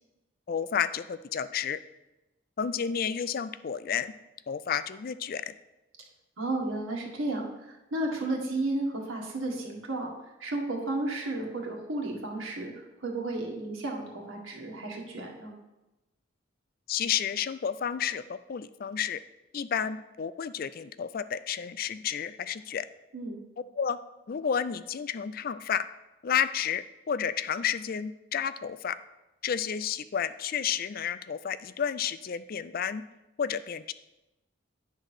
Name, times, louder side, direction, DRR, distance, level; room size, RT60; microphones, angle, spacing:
voice 1, 0.5-1.8 2.6-4.1 4.5-5.5 16.9-19.2 19.5-22.9 23.8-24.0 24.3-25.9 26.2-29.0 29.4-33.0 33.4-33.9, left 8 dB, 45° left, 14 dB, 0.3 m, -31 dB
voice 2, 6.4-10.1 10.4-12.7 13.0-15.5 23.1-23.4, right 2 dB, 75° right, -1 dB, 1.8 m, -33 dB
10.5 x 3.8 x 6.5 m, 1.0 s
head